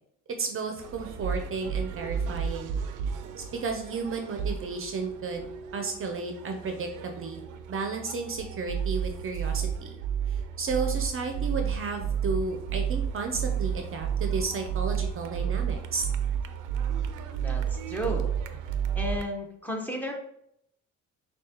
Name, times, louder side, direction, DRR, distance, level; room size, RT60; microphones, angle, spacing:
voice 1, 0.4-2.7 3.5-5.5 5.7-7.4 7.7-9.9 10.3-16.1, right 4 dB, 45° right, 4 dB, 0.6 m, -33 dB
sound 1, 0.8-19.2, right 8 dB, 90° right, 0.5 m, -32 dB
voice 2, 17.4-18.4 18.9-20.1, equal, 5° left, 0 dB, 0.9 m, -33 dB
6.3 x 2.3 x 2.9 m, 0.74 s
cardioid pair, 90°, 30 cm